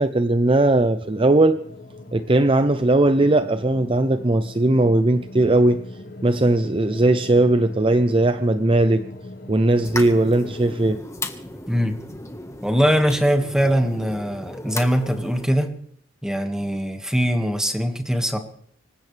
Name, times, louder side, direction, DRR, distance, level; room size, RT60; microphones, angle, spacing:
voice 1, 0.0-1.6 2.1-5.8 6.2-9.0 9.5-11.0, right 2 dB, 25° right, 10 dB, 0.6 m, -18 dB
sound 1, 0.7-11.0, left 1 dB, 50° left, 1.5 m, -41 dB
sound 2, 9.8-15.5, left 2 dB, 15° left, 1.4 m, -35 dB
voice 2, 11.7-12.0 12.6-15.8 16.2-18.4, equal, 5° right, 5 dB, 1.8 m, -22 dB
26.0 x 15.5 x 3.4 m, 0.65 s
head